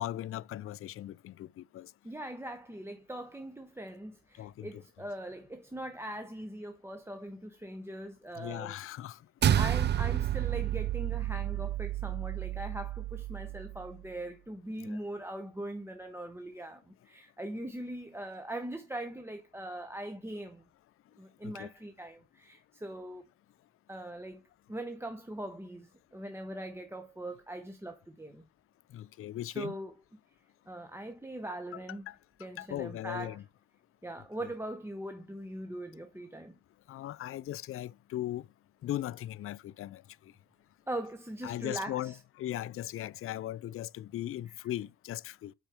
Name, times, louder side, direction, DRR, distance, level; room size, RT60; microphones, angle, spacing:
voice 1, 0.0-1.9 4.4-4.8 8.4-9.2 14.8-15.0 21.4-21.7 28.9-29.8 32.1-32.2 32.6-33.4 36.9-38.5 38.8-40.3 41.4-45.5, left 13 dB, 45° left, 0.4 m, -38 dB
voice 2, 2.0-8.8 9.5-20.6 21.2-23.2 23.9-24.4 24.7-28.5 29.5-29.9 30.7-32.0 32.4-33.4 34.0-36.6 40.9-42.2 44.5-44.6, right 1 dB, 10° right, 0.9 m, -41 dB
sound 1, 9.4-14.0, right 12 dB, 35° right, 0.4 m, -30 dB
9.1 x 4.4 x 3.5 m
cardioid pair, 90°, 30 cm